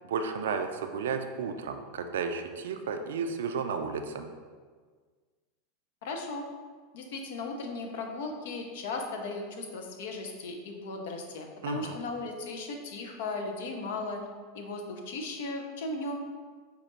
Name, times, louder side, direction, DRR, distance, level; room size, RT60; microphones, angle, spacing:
voice 1, 0.0-4.3 11.6-12.0, right 5 dB, 75° right, 6 dB, 0.3 m, -33 dB
voice 2, 6.0-6.5 6.9-14.2 14.5-16.2, left 3 dB, 65° left, 3 dB, 0.6 m, -36 dB
5.0 x 2.3 x 3.0 m, 1.5 s
hypercardioid pair, 90°, 0 cm